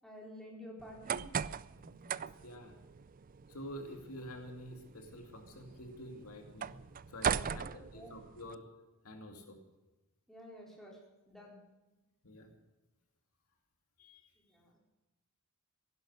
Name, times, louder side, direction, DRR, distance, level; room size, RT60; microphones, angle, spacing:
voice 1, 0.0-1.3 7.4-8.2 10.3-11.0 11.3-11.6 14.4-14.8, equal, ahead, -2 dB, 4.1 m, -51 dB
sound 1, 0.8-8.5, right 7 dB, 40° right, 0.4 m, -40 dB
voice 2, 1.8-2.7 3.5-6.8 7.1-8.6 9.0-9.6 12.2-12.5 14.0-14.3, equal, 85° left, 3 dB, 2.6 m, -48 dB
16.0 x 11.5 x 6.5 m, 1.1 s
head